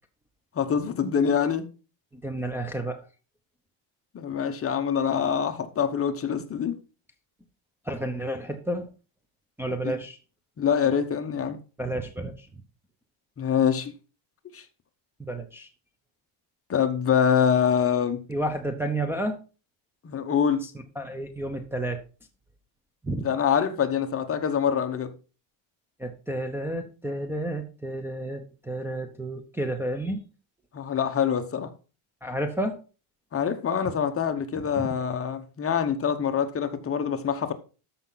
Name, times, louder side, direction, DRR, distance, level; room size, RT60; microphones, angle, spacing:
voice 1, 0.5-1.7 4.1-6.8 9.8-10.0 10.6-11.6 13.4-13.9 14.5-14.7 16.7-18.3 20.0-20.7 23.2-25.1 30.7-31.7 33.3-37.5, left 7 dB, 30° left, 1.0 m, -25 dB
voice 2, 2.1-3.1 7.8-8.9 9.6-10.2 11.8-12.5 15.2-15.7 18.3-19.4 20.6-20.7 21.0-22.0 23.0-23.3 26.0-30.3 32.2-32.8 33.9-34.0 34.6-34.9, right 1 dB, 5° right, 0.7 m, -31 dB
13.5 x 5.7 x 4.0 m
cardioid pair, 145°, 48 cm